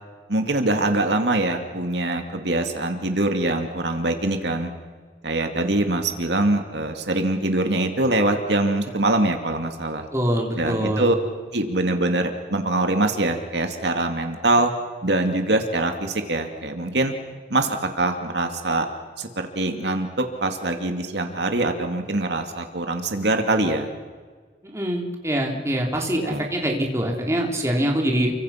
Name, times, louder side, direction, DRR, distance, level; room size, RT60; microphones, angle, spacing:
voice 1, 0.3-4.7 5.2-10.1 10.5-11.2 11.5-14.7 15.0-17.1 17.5-18.9 19.2-23.9 26.2-26.4, right 2 dB, 65° right, 5 dB, 2.3 m, -23 dB
voice 2, 10.1-11.1 24.6-28.3, right 1 dB, 15° right, 0 dB, 3.5 m, -24 dB
30.0 x 24.0 x 5.9 m, 1.5 s
head